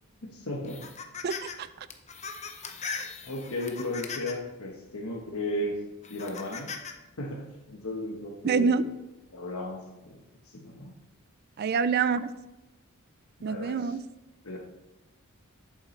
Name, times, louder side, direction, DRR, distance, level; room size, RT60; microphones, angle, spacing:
voice 1, 0.2-0.9 3.2-5.8 6.1-6.7 7.2-8.8 9.3-10.2 10.5-10.9 13.4-13.9 14.4-14.6, left 1 dB, 75° left, -2 dB, 1.1 m, -35 dB
sound 1, 0.6-1.6 1.9-4.5 5.1-5.2 6.0-6.9, left 5 dB, 30° left, 0.7 m, -39 dB
voice 2, 1.2-1.9 8.4-8.8 11.6-12.3 13.4-14.0, right 5 dB, 45° right, 15 dB, 0.3 m, -26 dB
8.4 x 7.4 x 3.2 m, 0.99 s
head